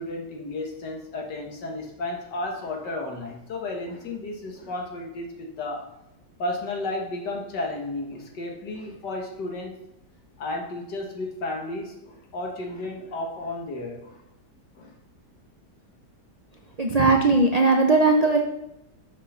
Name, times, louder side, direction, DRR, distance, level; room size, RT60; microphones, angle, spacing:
voice 1, 0.0-5.9 6.4-9.8 10.4-14.2 14.8-14.9, left 2 dB, 85° left, 1 dB, 2.0 m, -33 dB
voice 2, 16.8-18.4, right 3 dB, 75° right, 2 dB, 0.3 m, -18 dB
7.0 x 5.3 x 5.4 m, 0.88 s
omnidirectional pair, 1.8 m